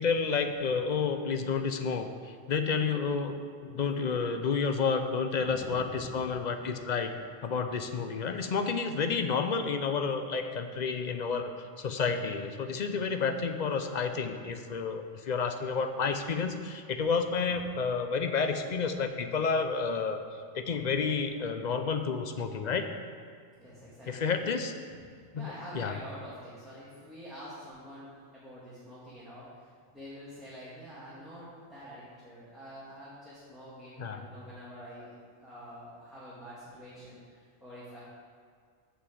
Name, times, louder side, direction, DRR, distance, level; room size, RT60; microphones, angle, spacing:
voice 1, 0.0-2.1 2.5-3.4 3.6-7.2 7.4-11.5 11.8-20.2 20.5-22.9 24.1-24.7 25.3-25.5 25.7-25.9 34.0-34.2, left 5 dB, 50° left, 7 dB, 0.6 m, -30 dB
voice 2, 5.3-6.4 17.5-17.7 23.6-24.3 24.9-25.0 25.3-35.1 35.4-38.0, equal, ahead, -11 dB, 1.9 m, -47 dB
6.3 x 6.2 x 7.5 m, 2.1 s
omnidirectional pair, 1.2 m